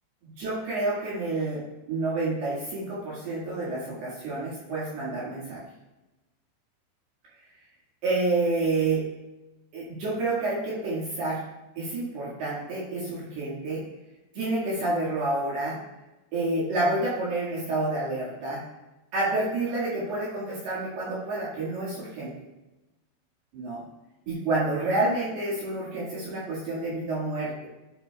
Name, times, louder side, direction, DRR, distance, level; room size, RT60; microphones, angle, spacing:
voice 1, 0.2-5.6 8.0-9.1 9.7-11.4 11.8-13.8 14.4-15.8 16.3-18.6 19.1-22.3 23.5-23.8 24.3-27.7, right 2 dB, 65° right, -7 dB, 3.6 m, -29 dB
12.5 x 7.5 x 2.3 m, 1.0 s
omnidirectional pair, 5.4 m